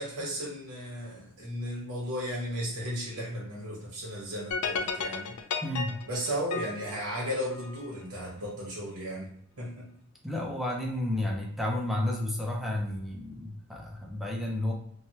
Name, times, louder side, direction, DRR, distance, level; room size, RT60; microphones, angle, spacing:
voice 1, 0.0-5.4 6.1-9.3 9.6-9.9, equal, 80° right, -4 dB, 1.0 m, -35 dB
sound 1, 4.5-7.9, left 5 dB, 80° left, 0.4 m, -34 dB
voice 2, 5.6-6.0 10.2-14.7, left 1 dB, ahead, -1 dB, 0.5 m, -31 dB
3.2 x 2.2 x 2.8 m, 0.68 s
head